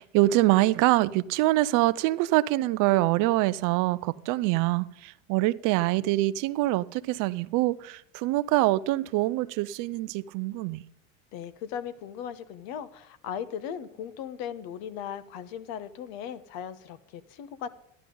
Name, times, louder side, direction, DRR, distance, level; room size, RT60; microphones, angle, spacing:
voice 1, 0.0-10.8, right 18 dB, 55° right, 0.6 m, -25 dB
voice 2, 11.3-17.7, left 8 dB, 60° left, 1.1 m, -38 dB
12.0 x 11.5 x 3.9 m
hypercardioid pair, 95°, 39 cm